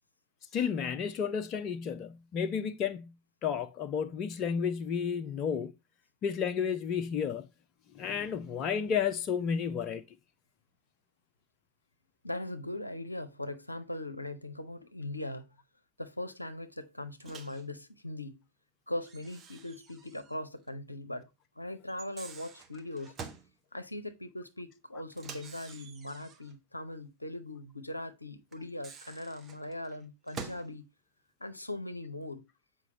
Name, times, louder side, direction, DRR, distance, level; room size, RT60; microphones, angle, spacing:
voice 1, 0.5-3.1 3.4-5.7 6.2-7.4 7.9-10.0, left 7 dB, 35° left, 0.6 m, -32 dB
voice 2, 12.2-15.5 16.0-18.3 18.9-21.3 21.6-23.2 23.7-30.9 31.4-32.4, left 1 dB, 85° left, 0.6 m, -40 dB
Microwave oven, 17.2-17.7 19.0-20.4 20.7-20.8 21.9-23.5 25.1-26.5 28.5-30.7, right 5 dB, 25° right, 0.9 m, -48 dB
7.0 x 5.0 x 2.7 m
figure-of-eight pair, 90°, 0 cm